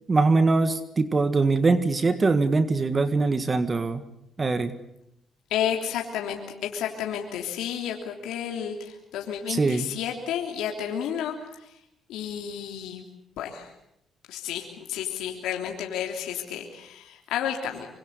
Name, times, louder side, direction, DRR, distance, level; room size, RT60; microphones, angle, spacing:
voice 1, 0.1-4.0 4.4-4.7 9.5-9.9, right 3 dB, 30° right, 11 dB, 1.8 m, -22 dB
voice 2, 5.5-11.8 12.1-13.0 13.4-13.7 14.3-17.9, left 9 dB, 90° left, 2 dB, 3.2 m, -31 dB
25.5 x 25.0 x 8.2 m, 0.81 s
cardioid pair, 90°, 0 cm